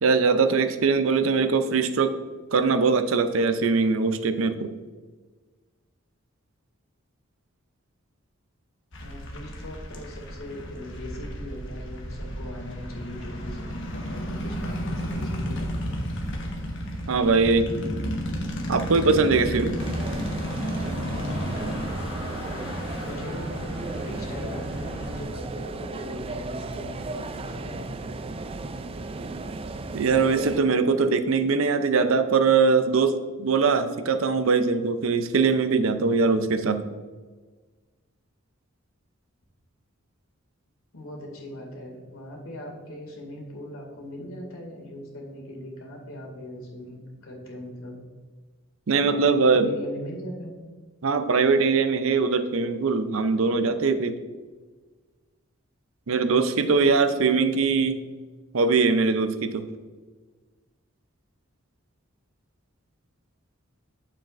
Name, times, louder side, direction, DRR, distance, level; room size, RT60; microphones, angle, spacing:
voice 1, 0.0-2.2 2.5-4.7 17.1-17.7 18.7-19.8 29.9-36.8 48.9-49.7 51.0-54.2 56.1-57.9 58.5-59.7, right 4 dB, 70° right, 10 dB, 0.6 m, -22 dB
sound 1, 8.9-25.2, equal, 60° left, 1.3 m, -32 dB
voice 2, 9.0-16.0 22.8-23.6 23.9-27.8 40.9-48.0 49.0-50.5 57.0-57.9, left 1 dB, 80° left, 0 dB, 2.2 m, -39 dB
sound 2, 19.8-30.6, right 3 dB, 25° right, 0.3 m, -35 dB
9.0 x 7.2 x 2.5 m, 1.4 s
head